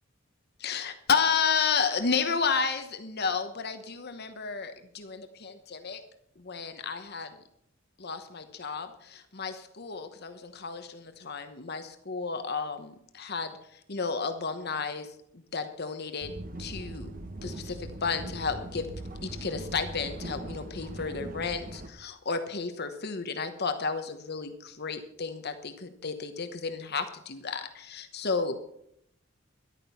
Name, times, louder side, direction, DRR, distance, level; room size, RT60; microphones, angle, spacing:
voice 1, 0.6-6.0 6.4-7.3 8.0-15.1 15.5-16.3 16.6-17.1 17.4-18.9 19.2-28.7, left 5 dB, 55° left, 8 dB, 1.1 m, -32 dB
sound 1, 16.2-21.9, right 1 dB, 45° right, 1.2 m, -40 dB
13.5 x 11.5 x 5.7 m, 0.73 s
head